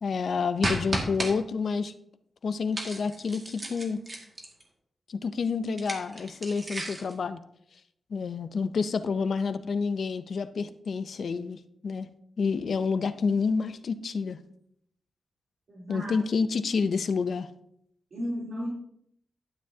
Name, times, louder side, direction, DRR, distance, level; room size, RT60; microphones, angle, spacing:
voice 1, 0.0-1.9 2.4-4.0 5.1-7.4 8.1-12.1 12.4-14.4 15.9-17.5, left 5 dB, 65° left, 11 dB, 0.6 m, -29 dB
sound 1, 0.6-1.3 2.7-4.6 5.7-7.1, right 1 dB, 30° right, 2.0 m, -33 dB
voice 2, 15.7-16.2 18.1-18.7, equal, 60° right, -8 dB, 3.2 m, -34 dB
12.0 x 9.4 x 2.8 m, 0.72 s
wide cardioid pair, 135°, 0 cm